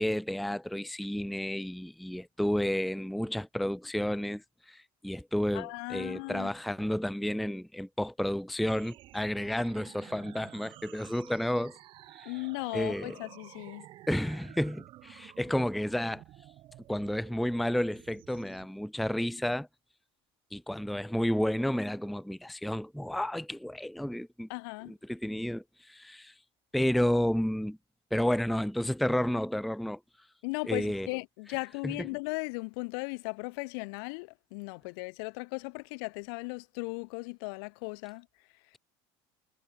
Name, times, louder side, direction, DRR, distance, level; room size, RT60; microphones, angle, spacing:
voice 1, 0.0-11.8 12.2-12.3 12.7-13.1 14.1-16.2 16.9-19.7 20.5-24.5 25.1-26.3 26.7-27.8 28.1-30.0 30.7-31.1 31.8-32.0, left 1 dB, ahead, 0.4 m, -31 dB
voice 2, 5.5-6.5 12.3-13.9 24.5-24.9 30.4-38.3 38.7-38.8, left 32 dB, 75° left, 1.7 m, -37 dB
sound 1, 8.7-18.7, right 15 dB, 45° right, 1.9 m, -52 dB
cardioid pair, 155°, 12 cm